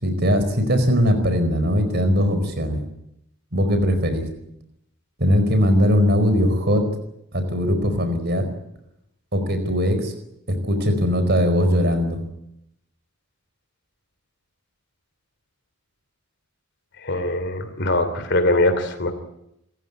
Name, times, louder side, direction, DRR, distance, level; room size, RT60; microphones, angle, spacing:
voice 1, 0.0-2.8 3.5-4.3 5.2-6.8 7.3-8.5 9.3-10.1 10.6-12.2, equal, 50° right, 9 dB, 4.7 m, -20 dB
voice 2, 17.0-19.1, left 1 dB, 55° left, 10 dB, 3.0 m, -22 dB
28.0 x 15.0 x 9.6 m, 0.81 s
head